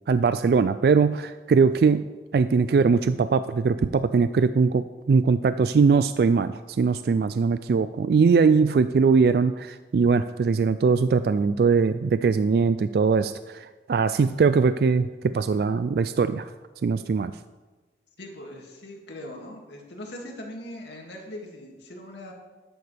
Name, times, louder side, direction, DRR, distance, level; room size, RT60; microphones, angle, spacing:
voice 1, 0.1-2.1 2.3-16.5 16.8-17.3, right 5 dB, 60° right, 12 dB, 0.3 m, -21 dB
voice 2, 18.2-22.3, left 1 dB, 80° left, 0 dB, 2.3 m, -40 dB
13.0 x 10.5 x 3.4 m, 1.2 s
head